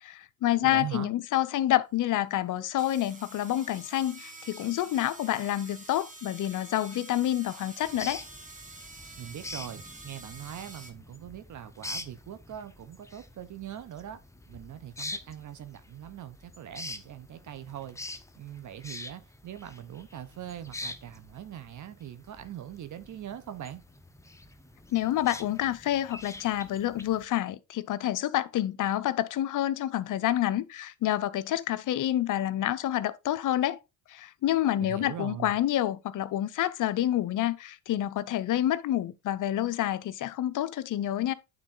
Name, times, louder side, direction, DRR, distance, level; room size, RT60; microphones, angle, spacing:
voice 1, 0.0-8.2 24.9-33.8 34.1-41.3, left 13 dB, 50° left, 0.7 m, -28 dB
voice 2, 0.6-1.1 9.2-14.2 14.5-23.8 34.8-35.6, right 11 dB, 45° right, 1.0 m, -41 dB
sound 1, 1.9-2.0 2.7-10.9, right 2 dB, 20° right, 1.6 m, -47 dB
sound 2, 7.8-27.2, left 2 dB, 5° left, 0.8 m, -45 dB
8.9 x 3.9 x 3.8 m
supercardioid pair, 90°, 40 cm